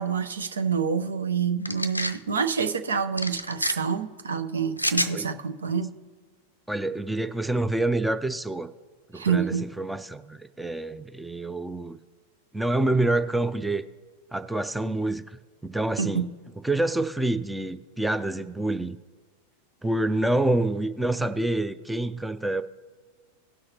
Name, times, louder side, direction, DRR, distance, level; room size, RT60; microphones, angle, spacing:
voice 1, 0.0-5.9 9.1-9.7 16.0-16.3, right 6 dB, 70° right, 9 dB, 0.6 m, -27 dB
sound 1, 1.7-2.2 3.2-3.7 4.8-5.1, left 1 dB, 90° left, 0.5 m, -27 dB
voice 2, 6.7-8.7 9.1-12.0 12.5-13.8 14.3-16.3 16.6-19.0 19.8-22.6, right 2 dB, 5° right, 11 dB, 0.4 m, -27 dB
18.0 x 6.3 x 2.9 m, 1.5 s
figure-of-eight pair, 90°, 0 cm